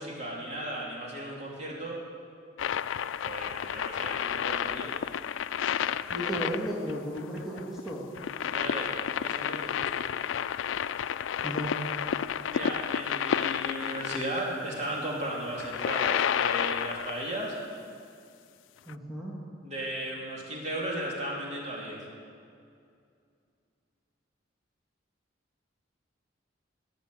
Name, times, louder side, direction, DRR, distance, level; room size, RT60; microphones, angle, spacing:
voice 1, 0.0-2.0 3.2-4.9 5.8-6.4 8.5-10.0 12.5-17.6 19.6-22.0, right 1 dB, 35° right, -3 dB, 3.1 m, -36 dB
sound 1, 2.6-14.4 15.5-17.3 18.9-19.0, left 8 dB, 80° left, 0.3 m, -31 dB
voice 2, 6.1-8.0 11.4-11.9 18.9-19.3, equal, ahead, -6 dB, 2.1 m, -34 dB
20.0 x 6.9 x 7.9 m, 2.3 s
head